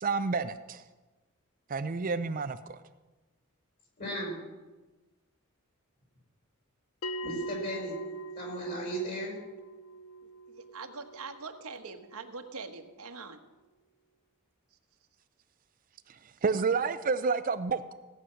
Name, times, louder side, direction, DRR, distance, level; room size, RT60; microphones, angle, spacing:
voice 1, 0.0-0.8 1.7-2.8 16.4-17.9, right 4 dB, 40° right, 11 dB, 0.5 m, -29 dB
voice 2, 4.0-4.4 7.2-8.0 8.4-9.4, right 1 dB, 45° left, -1 dB, 5.7 m, -36 dB
Bell, 7.0-12.1, right 2 dB, 85° left, 0.5 m, -42 dB
voice 3, 10.2-13.4, right 4 dB, 85° right, 5 dB, 1.3 m, -43 dB
16.5 x 9.3 x 6.3 m, 1.2 s
head